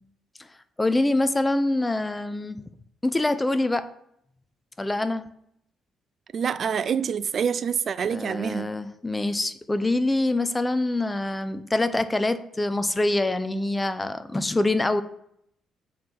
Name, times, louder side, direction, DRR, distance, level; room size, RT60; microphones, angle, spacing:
voice 1, 0.8-2.6 3.0-3.9 4.8-5.3 8.1-15.0, left 2 dB, 15° left, 0.8 m, -25 dB
voice 2, 6.3-8.7, right 7 dB, 50° right, 0.4 m, -26 dB
7.6 x 5.7 x 7.3 m
cardioid pair, 95°, 0 cm